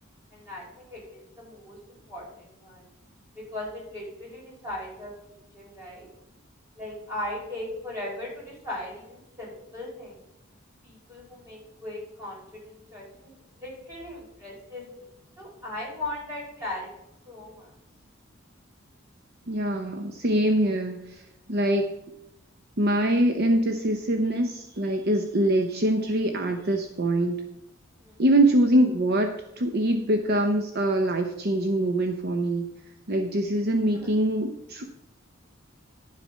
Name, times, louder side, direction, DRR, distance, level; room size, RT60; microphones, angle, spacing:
voice 1, 0.3-2.9 3.3-6.1 6.8-10.2 10.8-13.3 13.6-15.1 15.4-16.9 17.2-17.7 28.0-28.2 33.9-34.1, left 1 dB, 15° right, -4 dB, 4.9 m, -38 dB
voice 2, 19.5-21.2 21.5-21.9 22.8-27.3 28.2-32.7 33.1-34.9, right 1 dB, 50° right, 5 dB, 0.8 m, -24 dB
11.0 x 7.4 x 5.5 m, 0.86 s
head